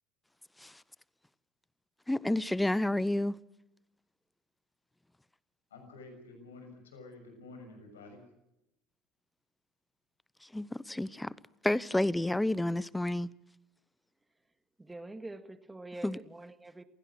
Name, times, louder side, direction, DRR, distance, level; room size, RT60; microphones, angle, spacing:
voice 1, 2.1-3.4 10.4-11.3 11.6-13.3 16.0-16.2, left 1 dB, 5° left, 0.9 m, -30 dB
voice 2, 5.7-8.2, left 3 dB, 80° left, 6.5 m, -50 dB
voice 3, 14.8-16.8, right 2 dB, 10° right, 2.0 m, -45 dB
28.0 x 17.0 x 6.3 m
hypercardioid pair, 70°, 0 cm